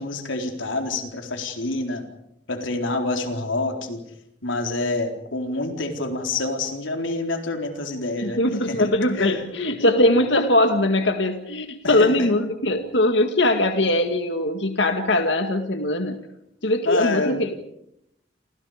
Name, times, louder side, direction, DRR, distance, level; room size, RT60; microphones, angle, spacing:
voice 1, 0.0-2.1 2.5-4.0 4.4-8.4 8.7-9.4 10.0-10.1 11.8-12.3 16.8-17.4, left 2 dB, 90° left, 4 dB, 4.2 m, -27 dB
voice 2, 8.2-16.2 16.6-17.5, left 1 dB, 65° left, 6 dB, 2.1 m, -21 dB
29.5 x 27.0 x 5.1 m, 0.78 s
head